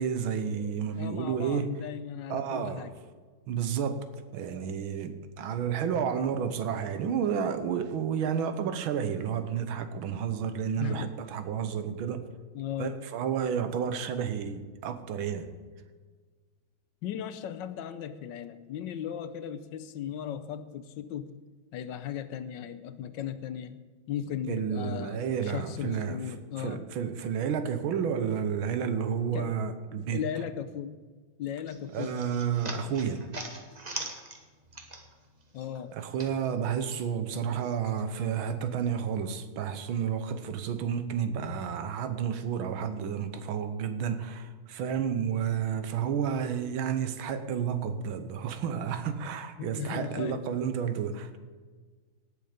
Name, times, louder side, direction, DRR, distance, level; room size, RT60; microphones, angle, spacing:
voice 1, 0.0-1.7 2.3-2.9 3.5-4.1 4.3-12.3 12.8-15.5 24.5-26.2 26.6-30.2 31.9-33.2 35.9-51.4, right 7 dB, 90° right, 10 dB, 1.7 m, -31 dB
voice 2, 0.9-2.9 10.8-11.1 12.5-13.0 17.0-21.3 21.7-23.8 24.1-26.8 29.3-29.6 30.0-31.0 31.4-32.2 35.5-35.9 49.6-50.4, left 9 dB, 75° left, 11 dB, 1.2 m, -37 dB
sound 1, 31.7-35.3 35.6-37.0, right 2 dB, 25° right, 1.0 m, -41 dB
18.0 x 6.8 x 5.1 m, 1.5 s
omnidirectional pair, 2.2 m